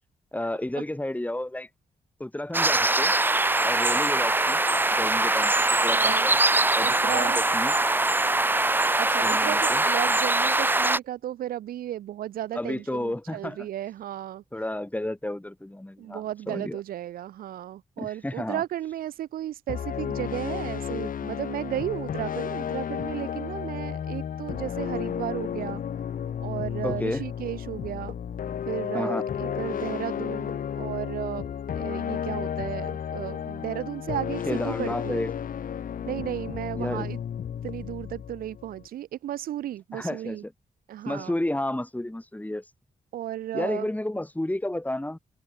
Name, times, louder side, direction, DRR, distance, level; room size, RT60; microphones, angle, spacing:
voice 1, 0.3-1.7 2.2-3.1 3.6-4.6 4.9-6.4 6.7-7.7 9.2-9.8 12.5-13.6 14.5-16.8 18.0-18.6 26.8-27.2 28.9-29.2 34.5-35.3 36.7-37.1 39.9-40.5 41.0-42.6 43.5-45.2, left 1 dB, 10° left, 3.3 m, -31 dB
sound 1, 2.5-11.0, right 2 dB, 15° right, 0.6 m, -22 dB
voice 2, 5.9-6.3 6.8-7.4 9.0-14.4 16.0-25.8 26.4-28.2 28.7-35.2 36.1-37.2 37.6-40.4 40.9-41.3 43.1-43.9, right 12 dB, 90° right, 4.6 m, -34 dB
sound 2, 19.7-38.9, left 8 dB, 70° left, 2.3 m, -33 dB
open air
supercardioid pair, 55°, 15 cm